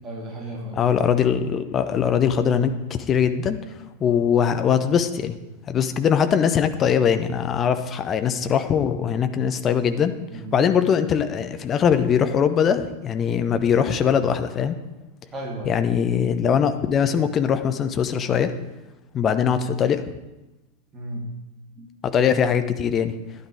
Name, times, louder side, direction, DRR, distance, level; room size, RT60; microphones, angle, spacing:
voice 1, 0.0-0.8 10.3-10.6 15.3-15.8 20.9-21.3 21.8-21.9, right 1 dB, 20° right, -1 dB, 2.8 m, -34 dB
voice 2, 0.8-3.6 4.0-5.4 5.7-10.2 10.5-14.7 15.6-18.5 19.1-20.0 22.0-23.2, left 7 dB, 25° left, 9 dB, 0.8 m, -21 dB
12.0 x 10.5 x 4.9 m, 1.0 s
figure-of-eight pair, 90°, 0 cm